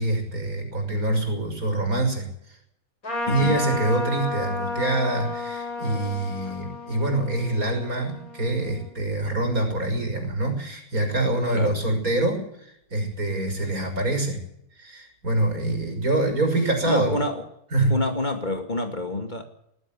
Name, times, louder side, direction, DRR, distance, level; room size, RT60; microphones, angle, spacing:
voice 1, 0.0-2.3 3.3-14.4 14.8-17.2 17.7-18.0, right 2 dB, 85° right, 4 dB, 6.6 m, -25 dB
Trumpet, 3.0-8.9, left 3 dB, 85° left, 7.5 m, -32 dB
voice 2, 3.3-3.6 11.5-11.8 16.9-17.5 17.9-19.4, left 2 dB, 30° left, 5 dB, 2.4 m, -27 dB
20.5 x 13.5 x 9.3 m, 0.75 s
omnidirectional pair, 1.5 m